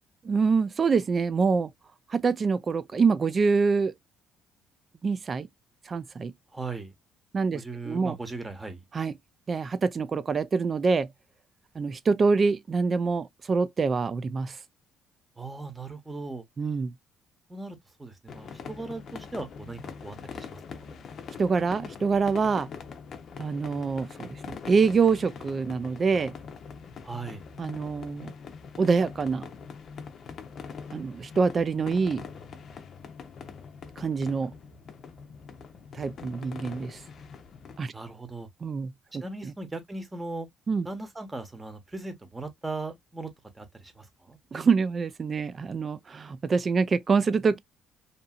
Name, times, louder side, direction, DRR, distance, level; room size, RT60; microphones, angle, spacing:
voice 1, 0.2-1.7 2.1-3.9 5.0-5.5 5.9-6.3 7.3-8.2 8.9-9.1 9.5-11.1 11.8-14.6 16.6-16.9 21.4-22.7 23.4-26.3 27.6-28.3 28.8-29.5 30.9-32.2 34.0-34.5 35.9-37.0 37.8-37.9 38.6-39.5 40.7-40.9 44.5-47.6, right 5 dB, 35° right, 0.4 m, -25 dB
voice 2, 6.5-6.9 7.5-8.8 15.4-16.4 17.5-20.2 20.5-20.9 27.0-27.4 37.9-38.5 39.2-40.5 40.8-43.3 43.6-44.4, right 3 dB, 15° right, 1.0 m, -38 dB
sound 1, 18.3-37.8, left 6 dB, 55° left, 0.6 m, -43 dB
2.8 x 2.6 x 2.4 m
cardioid pair, 95°, 0 cm